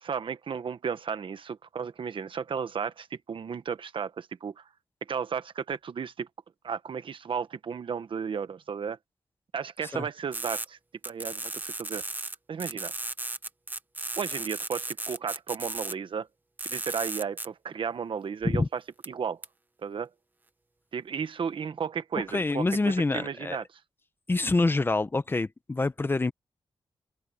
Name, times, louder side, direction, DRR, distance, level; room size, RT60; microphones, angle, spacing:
voice 1, 0.0-4.6 5.1-6.3 6.6-9.0 9.5-10.8 11.0-12.0 12.5-12.9 14.2-16.3 16.6-18.8 19.1-19.4 19.8-20.1 20.9-23.6, right 6 dB, 60° right, 1.3 m, -34 dB
sound 1, 10.3-10.6 11.0-12.3 12.6-15.9 16.6-17.5 19.0-19.1 19.4-19.5, right 2 dB, 20° right, 1.1 m, -35 dB
voice 2, 22.3-23.6 24.3-26.3, left 3 dB, 20° left, 0.9 m, -26 dB
open air
wide cardioid pair, 135°, 10 cm